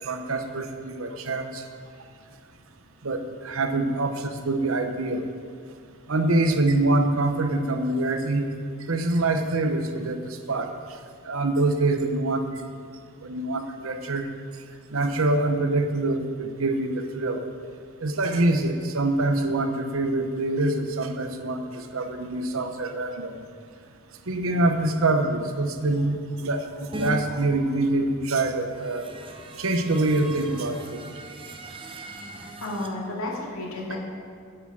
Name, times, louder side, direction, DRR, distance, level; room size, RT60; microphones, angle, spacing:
voice 1, 0.0-1.6 3.0-5.3 6.1-8.5 8.9-10.7 11.2-12.7 13.2-14.3 14.9-17.4 18.0-23.4 24.3-29.1 29.6-31.2, right 2 dB, 70° right, 7 dB, 0.9 m, -25 dB
sound 1, 26.9-27.1 28.5-32.9, right 1 dB, 25° right, 0.7 m, -39 dB
voice 2, 32.6-34.0, left 2 dB, 80° left, -3 dB, 2.3 m, -32 dB
10.0 x 6.9 x 7.3 m, 2.2 s
head